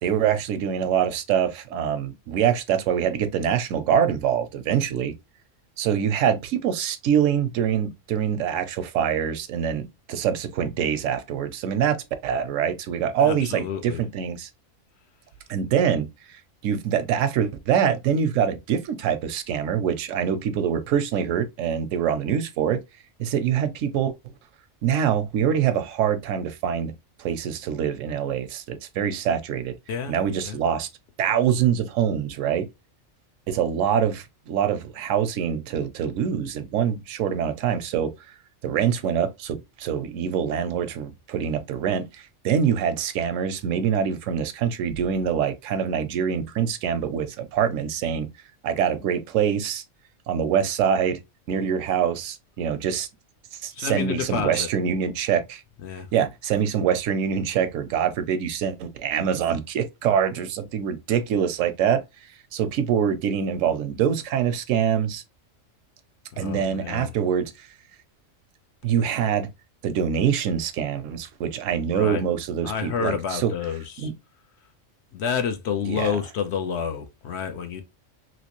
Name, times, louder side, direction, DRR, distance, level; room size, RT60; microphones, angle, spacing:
voice 1, 0.0-5.1 5.8-12.0 12.2-14.5 15.5-16.1 16.6-22.8 23.2-24.1 24.8-26.9 27.2-29.7 30.1-30.9 31.2-32.7 33.5-38.1 38.6-48.3 48.6-49.8 50.3-51.2 51.5-53.1 53.6-55.6 56.1-62.0 62.5-65.2 66.4-67.7 68.8-69.5 69.8-73.5 74.0-74.1 75.9-76.2, right 8 dB, 80° right, 0.9 m, -24 dB
voice 2, 13.2-14.0 29.9-30.1 30.5-30.6 53.7-54.7 55.8-56.1 66.4-67.1 71.9-72.2 72.6-74.1 75.1-77.8, left 7 dB, 65° left, 0.8 m, -29 dB
3.1 x 2.9 x 2.8 m
omnidirectional pair, 1.3 m